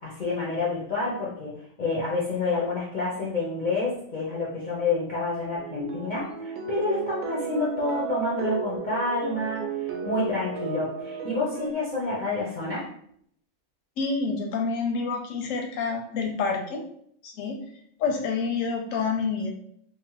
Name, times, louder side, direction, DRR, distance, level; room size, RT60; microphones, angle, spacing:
voice 1, 0.0-12.9, left 3 dB, 55° left, -6 dB, 0.5 m, -28 dB
sound 1, 5.6-11.7, right 6 dB, 90° right, 1.0 m, -34 dB
voice 2, 14.0-16.8 17.2-17.6 18.0-19.5, left 4 dB, 85° left, 2 dB, 1.0 m, -28 dB
2.8 x 2.0 x 2.9 m, 0.67 s
omnidirectional pair, 1.4 m